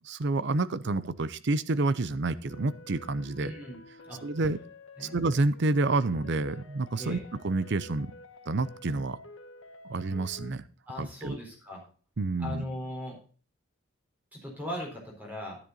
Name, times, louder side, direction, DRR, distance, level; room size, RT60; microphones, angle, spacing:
voice 1, 0.0-3.5 4.2-4.6 5.0-8.1 8.5-9.2 9.9-10.7 11.0-11.4 12.2-12.6, right 2 dB, 60° right, 15 dB, 0.7 m, -29 dB
sound 1, 2.5-10.5, left 2 dB, 80° left, 1.3 m, -50 dB
voice 2, 3.4-3.8 4.0-4.5 5.0-5.2 7.0-7.2 10.9-11.8 12.4-13.2 14.3-15.6, left 1 dB, 10° right, 0 dB, 4.3 m, -39 dB
10.5 x 10.0 x 4.0 m, 0.40 s
head